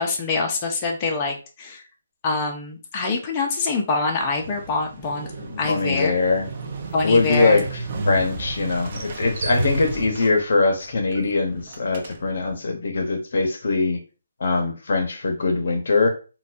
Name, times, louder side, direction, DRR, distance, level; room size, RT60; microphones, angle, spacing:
voice 1, 0.0-1.8 2.2-5.3 5.6-6.1 6.9-7.6, left 3 dB, 20° left, 1 dB, 0.5 m, -25 dB
Motorcycle, 4.2-12.5, right 2 dB, 35° right, 0.6 m, -32 dB
voice 2, 5.4-6.5 7.0-14.0 14.4-16.1, left 3 dB, 60° left, 4 dB, 0.7 m, -22 dB
3.9 x 2.2 x 2.5 m, 0.34 s
hypercardioid pair, 170°, 0 cm